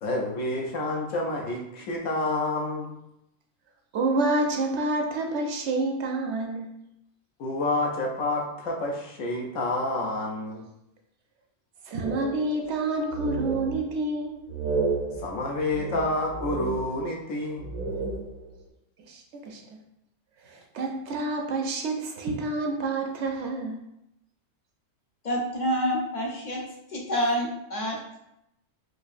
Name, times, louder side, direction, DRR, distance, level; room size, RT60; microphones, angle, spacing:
voice 1, 0.0-3.0 7.4-10.6 15.2-17.7, left 2 dB, 80° left, -1 dB, 1.0 m, -29 dB
voice 2, 3.9-6.7 11.9-14.5 19.1-19.6 20.4-23.8, right 2 dB, 65° right, 2 dB, 0.8 m, -28 dB
sound 1, 12.0-12.8 13.1-14.1 14.5-17.3 17.6-18.6, right 3 dB, 85° right, 1.1 m, -32 dB
voice 3, 25.2-26.6 26.9-28.2, equal, 50° left, -1 dB, 0.6 m, -28 dB
4.5 x 2.5 x 2.4 m, 0.83 s
omnidirectional pair, 1.3 m